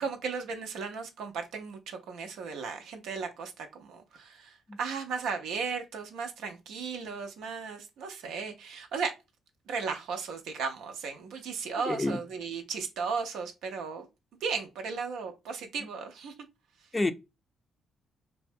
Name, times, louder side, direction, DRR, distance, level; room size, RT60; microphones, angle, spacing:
voice 1, 0.0-9.1 9.7-14.1 14.4-16.3, right 5 dB, 80° right, 0.4 m, -35 dB
voice 2, 11.9-12.2 16.9-17.1, left 2 dB, 20° left, 0.4 m, -28 dB
2.6 x 2.1 x 2.5 m
supercardioid pair, 60°, 0 cm